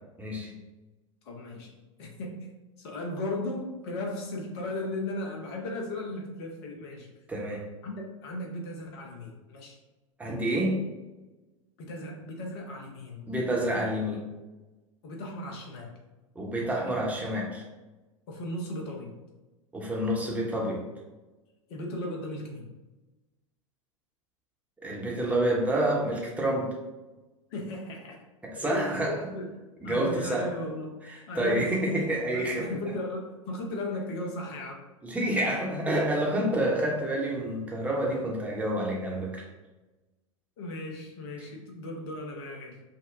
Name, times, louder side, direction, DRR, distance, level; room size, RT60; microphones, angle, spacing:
voice 1, 0.2-0.5 7.3-7.6 10.2-10.8 13.3-14.3 16.3-17.6 19.7-20.8 24.8-26.8 28.6-29.2 29.8-30.5 31.1-32.7 35.0-39.4, right 1 dB, 10° right, -3 dB, 0.9 m, -28 dB
voice 2, 1.2-1.7 2.0-2.5 2.8-7.1 7.8-7.9 8.2-9.8 11.8-13.3 15.0-15.9 18.3-19.1 21.7-22.7 27.5-28.2 28.6-29.5 29.8-30.9 31.3-32.0 32.3-34.8 40.6-42.8, left 1 dB, 50° left, 1 dB, 0.9 m, -36 dB
5.3 x 2.2 x 2.5 m, 1.1 s
figure-of-eight pair, 85°, 17 cm